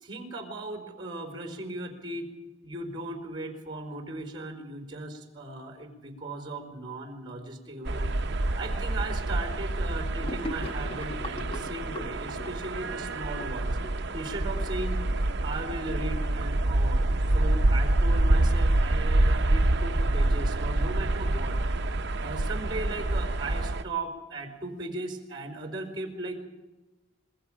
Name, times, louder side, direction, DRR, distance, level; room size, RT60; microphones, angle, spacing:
voice 1, 0.0-2.3 2.6-13.8 14.1-15.0 15.4-21.6 22.2-26.4, right 2 dB, 25° right, 5 dB, 4.5 m, -37 dB
sound 1, 7.9-23.8, right 2 dB, 55° right, 0.8 m, -26 dB
Gurgling / Sink (filling or washing), 10.2-14.7, left 1 dB, 25° left, 1.3 m, -40 dB
26.5 x 21.5 x 5.1 m, 1.1 s
head